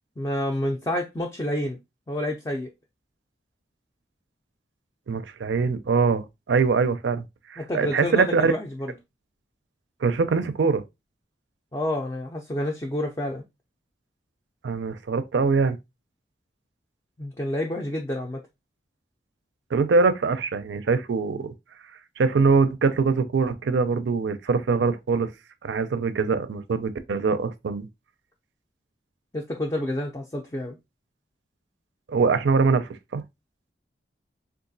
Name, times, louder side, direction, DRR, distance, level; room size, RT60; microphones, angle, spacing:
voice 1, 0.2-1.8 2.1-2.7 7.6-8.9 11.7-13.4 17.2-18.4 29.3-30.8, left 1 dB, 20° left, 0.4 m, -29 dB
voice 2, 5.1-7.2 7.5-8.5 10.0-10.8 14.6-15.8 19.7-21.5 22.2-25.3 25.6-27.9 32.1-33.2, right 4 dB, 90° right, 0.4 m, -23 dB
3.8 x 2.4 x 2.6 m
head